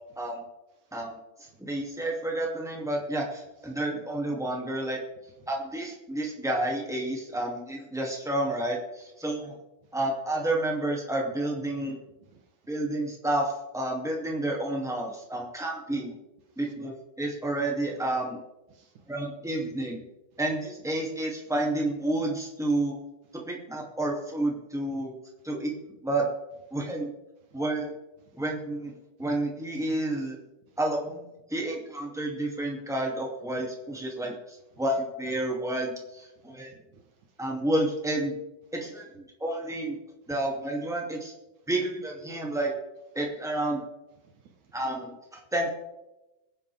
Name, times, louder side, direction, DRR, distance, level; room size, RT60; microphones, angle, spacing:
voice 1, 0.9-5.0 5.5-9.5 9.9-12.0 12.7-16.1 16.5-18.4 19.1-20.0 20.4-23.0 23.5-25.1 25.4-26.3 26.7-27.1 27.5-27.9 28.3-28.9 29.2-30.4 30.8-36.7 37.4-38.3 38.7-40.0 40.3-41.3 41.7-42.7 43.1-43.8 44.7-45.7, right 1 dB, ahead, -2 dB, 1.5 m, -30 dB
voice 2, 12.3-12.6 15.3-15.4 16.6-16.7 18.7-19.1 27.5-27.6 28.2-28.4 30.7-30.8 36.3-36.6 36.9-37.4 44.2-44.8, right 5 dB, 60° right, 4 dB, 2.4 m, -60 dB
23.0 x 10.0 x 3.6 m, 0.97 s
omnidirectional pair, 4.6 m